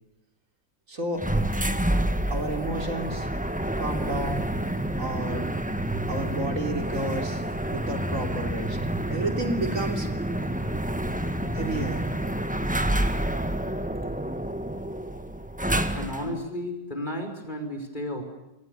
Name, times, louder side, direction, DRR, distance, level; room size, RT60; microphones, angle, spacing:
voice 1, 0.9-1.2 2.3-3.3 3.8-4.5 5.0-5.8 6.1-7.4 7.7-8.8 9.1-10.1 11.5-12.0, right 1 dB, 60° right, 5 dB, 3.7 m, -31 dB
sound 1, 1.2-16.4, right 1 dB, 5° right, 1.5 m, -28 dB
voice 2, 15.9-18.2, left 1 dB, 30° left, 5 dB, 5.8 m, -33 dB
29.5 x 24.5 x 6.8 m, 0.94 s
omnidirectional pair, 1.6 m